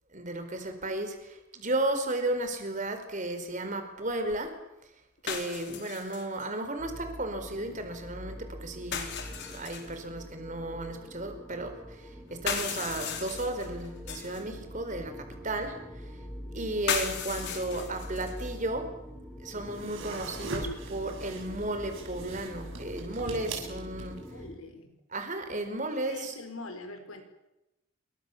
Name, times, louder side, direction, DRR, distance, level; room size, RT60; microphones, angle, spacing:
voice 1, 0.1-4.5 5.2-16.1 16.5-18.9 19.4-24.2 25.1-26.3, right 1 dB, 35° right, 7 dB, 4.6 m, -34 dB
sound 1, 2.1-2.2 5.3-6.5 8.9-10.0 12.3-14.4 16.9-18.5, left 6 dB, 55° left, 4.4 m, -35 dB
sound 2, 6.8-24.6, equal, 5° left, 3.8 m, -44 dB
sound 3, 19.6-24.3, right 3 dB, 65° right, 7.2 m, -41 dB
voice 2, 24.3-24.9 26.1-27.2, left 2 dB, 80° left, 6 dB, 5.6 m, -43 dB
28.0 x 24.0 x 7.3 m, 0.92 s
head